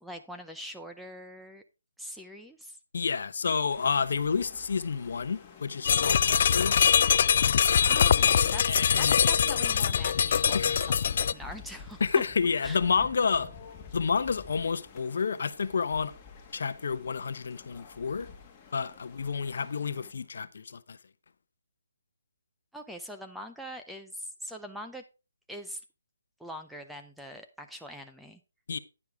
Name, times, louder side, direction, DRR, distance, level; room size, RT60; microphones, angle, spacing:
voice 1, 0.0-1.6 2.0-2.8 7.9-8.6 9.0-12.0 12.6-12.8 22.7-25.0 25.5-25.8 26.4-28.4, equal, ahead, 0.6 m, -43 dB
voice 2, 2.9-7.0 8.7-9.2 10.5-10.8 12.0-13.5 13.9-16.1 16.5-18.3 18.7-21.0 28.7-28.8, left 5 dB, 60° left, 0.8 m, -29 dB
sound 1, 3.7-20.1, left 6 dB, 15° left, 1.7 m, -50 dB
sound 2, 5.8-11.3, left 8 dB, 45° left, 0.4 m, -23 dB
9.8 x 6.7 x 3.5 m
hypercardioid pair, 165°, 0 cm